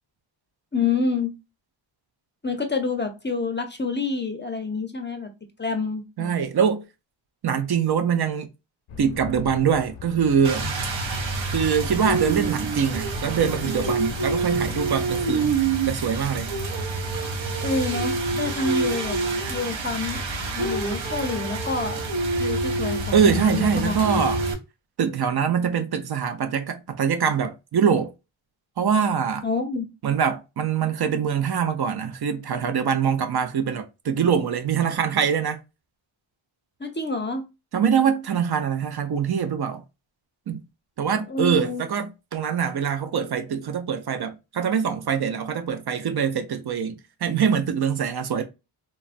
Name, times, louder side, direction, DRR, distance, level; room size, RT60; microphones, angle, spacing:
voice 1, 0.7-1.3 2.4-5.3 5.6-6.5 17.6-19.2 19.5-20.3 20.5-22.0 22.4-24.0 29.4-29.9 36.8-37.5 41.3-41.8, left 3 dB, 25° left, 0.5 m, -27 dB
voice 2, 6.2-6.8 7.4-8.5 9.0-10.8 11.5-15.5 15.9-16.5 23.1-24.4 25.0-28.1 28.8-29.5 30.0-35.6 37.7-39.8 40.5-40.6 41.0-48.4, right 7 dB, 50° right, 0.5 m, -23 dB
sound 1, 8.9-14.8, left 6 dB, 85° left, 0.6 m, -39 dB
Rain, 10.4-24.5, right 3 dB, 70° right, 0.9 m, -27 dB
3.0 x 2.3 x 2.4 m
wide cardioid pair, 85°, 49 cm